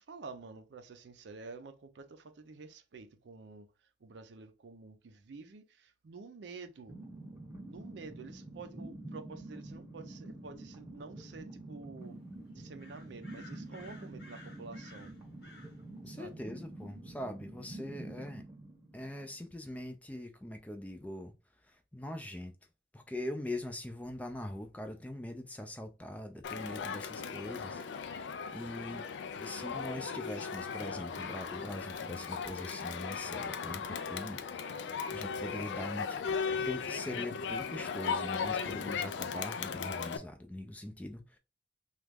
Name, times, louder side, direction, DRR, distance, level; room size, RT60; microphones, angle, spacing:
voice 1, 0.0-7.0 7.7-12.2 12.5-15.1 16.1-16.4, right 4 dB, 75° right, 0.5 m, -49 dB
sound 1, 6.9-19.5, right 1 dB, 10° right, 0.9 m, -47 dB
sound 2, 12.8-15.8, left 2 dB, 65° left, 1.2 m, -55 dB
voice 2, 16.0-18.4 18.9-21.3 21.6-22.5 22.9-29.1 29.4-34.8 35.1-41.4, left 1 dB, 10° left, 0.3 m, -42 dB
Crowd, 26.4-40.2, left 6 dB, 80° left, 0.3 m, -37 dB
3.1 x 2.3 x 3.3 m
head